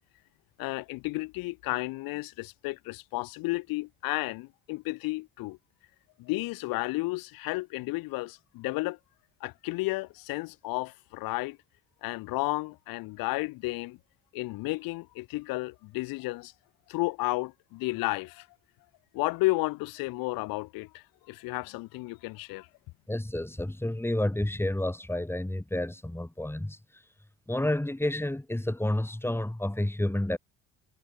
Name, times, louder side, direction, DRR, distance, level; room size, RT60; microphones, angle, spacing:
voice 1, 0.6-5.6 6.2-9.0 9.4-11.6 12.0-14.0 14.3-16.5 16.9-18.5 19.1-22.7, left 22 dB, 60° left, 1.8 m, -32 dB
voice 2, 23.1-26.8 27.5-30.4, left 1 dB, 5° left, 3.8 m, -30 dB
figure-of-eight pair, 50°, 38 cm